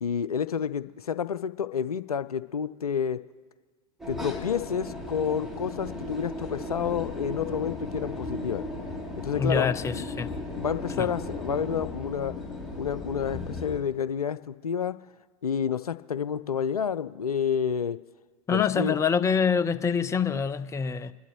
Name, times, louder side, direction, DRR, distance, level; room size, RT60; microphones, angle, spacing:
voice 1, 0.0-3.2 4.1-8.6 9.2-9.7 10.6-12.3 12.8-15.0 15.4-18.0 18.5-19.0, left 7 dB, 90° left, 0.4 m, -29 dB
sound 1, 4.0-13.8, left 2 dB, ahead, 2.8 m, -36 dB
voice 2, 9.4-10.3 11.0-11.1 18.5-21.1, left 6 dB, 15° left, 0.5 m, -25 dB
27.0 x 12.0 x 3.0 m
figure-of-eight pair, 90°, 18 cm